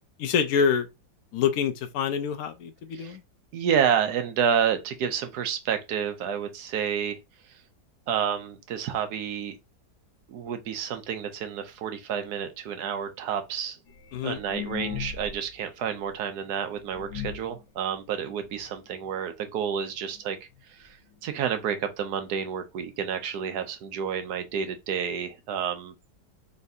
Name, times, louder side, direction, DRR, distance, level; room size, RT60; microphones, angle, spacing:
voice 1, 0.2-0.9 1.3-3.2 14.1-14.4, left 7 dB, 70° left, 0.9 m, -26 dB
voice 2, 3.5-7.2 7.5-7.6 8.1-9.6 10.3-13.8 14.2-20.4 20.6-25.9, right 8 dB, 70° right, 1.1 m, -29 dB
sound 1, 13.9-15.5 15.8-15.9 16.5-16.6 16.9-17.6 18.3-18.4 18.7-18.8 19.0-19.3 20.2-20.3 20.5-20.6 21.3-21.4 21.6-21.7, left 9 dB, 90° left, 1.4 m, -37 dB
4.0 x 3.3 x 2.7 m
omnidirectional pair, 1.9 m